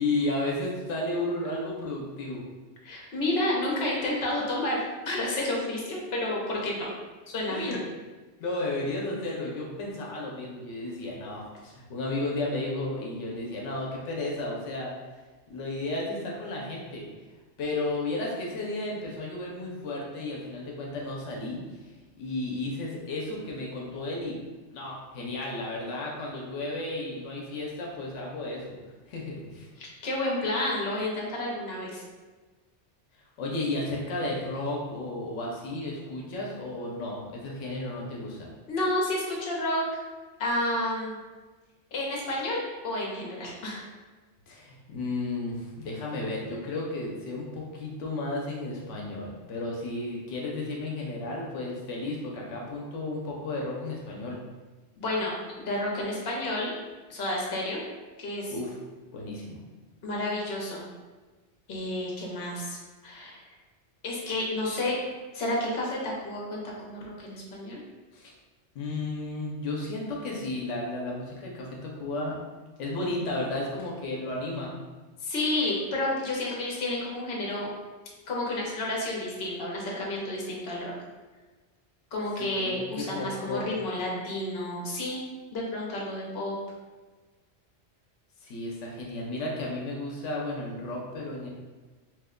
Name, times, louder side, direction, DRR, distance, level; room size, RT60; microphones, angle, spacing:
voice 1, 0.0-2.4 7.5-7.8 8.4-14.9 15.5-17.1 17.6-21.6 22.2-24.4 24.7-28.8 29.1-29.7 33.4-38.5 44.5-54.4 58.5-58.7 59.1-59.6 68.1-68.3 68.7-72.4 72.8-74.7 82.4-83.7 88.4-91.5, left 2 dB, 90° left, -2 dB, 0.9 m, -33 dB
voice 2, 2.8-4.8 5.0-6.9 7.3-7.7 29.8-32.0 38.7-39.8 40.4-41.2 41.9-43.8 55.0-56.7 57.1-57.8 58.2-58.5 60.0-60.8 61.7-62.8 63.0-63.4 64.0-65.0 65.3-67.8 75.2-77.7 78.3-80.9 82.1-85.2 85.5-86.6, left 1 dB, 65° left, -3 dB, 1.0 m, -30 dB
2.9 x 2.1 x 3.5 m, 1.3 s
omnidirectional pair, 1.2 m